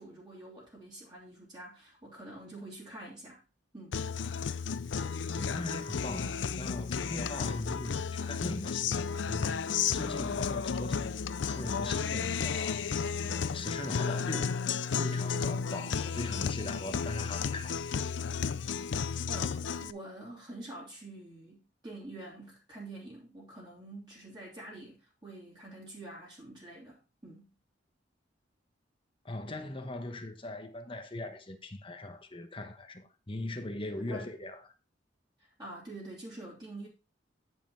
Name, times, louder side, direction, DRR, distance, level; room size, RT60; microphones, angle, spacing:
voice 1, 0.0-3.4 3.7-4.0 19.3-27.5 34.1-34.4 35.4-36.9, right 1 dB, 25° right, 3.1 m, -46 dB
Guitar, 3.9-19.9, left 6 dB, 85° left, 0.5 m, -33 dB
voice 2, 5.3-14.6 14.9-17.8 29.2-34.6, left 1 dB, 30° left, 1.1 m, -40 dB
9.7 x 5.5 x 4.4 m
head